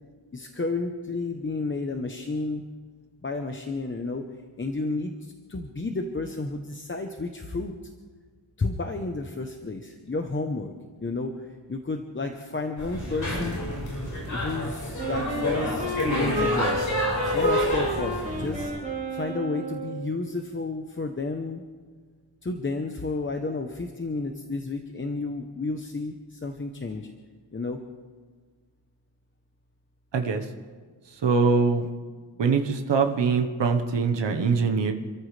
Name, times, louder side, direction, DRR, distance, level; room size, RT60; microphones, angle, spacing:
voice 1, 0.3-2.6 3.2-4.2 4.6-7.7 8.6-10.7 11.0-13.6 14.3-16.8 17.3-18.7 19.1-21.6 22.4-27.1 27.5-27.8, left 3 dB, 25° left, 4 dB, 0.9 m, -31 dB
sound 1, 12.8-18.7, left 1 dB, 40° left, 5.5 m, -29 dB
Wind instrument woodwind instrument, 15.0-20.1, right 1 dB, 15° right, 4.5 m, -30 dB
voice 2, 30.1-30.5 31.2-31.9 32.4-34.9, right 5 dB, 70° right, 4 dB, 1.3 m, -23 dB
28.0 x 14.0 x 3.4 m, 1.5 s
wide cardioid pair, 150°, 45 cm